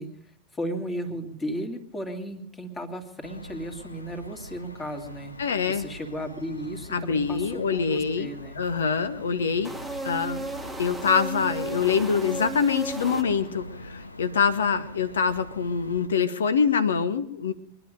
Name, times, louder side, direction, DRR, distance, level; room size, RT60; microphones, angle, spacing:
voice 1, 0.0-8.6, equal, 15° left, 5 dB, 2.3 m, -35 dB
sound 1, 3.2-16.1, left 1 dB, 85° left, 0.8 m, -43 dB
voice 2, 5.4-5.8 6.9-8.3 8.5-9.7 10.0-10.5 10.8-17.5, left 6 dB, 65° left, 12 dB, 1.1 m, -25 dB
sound 2, 9.6-13.7, right 3 dB, 5° right, 1.3 m, -35 dB
23.5 x 11.0 x 5.2 m, 0.71 s
figure-of-eight pair, 90°, 0 cm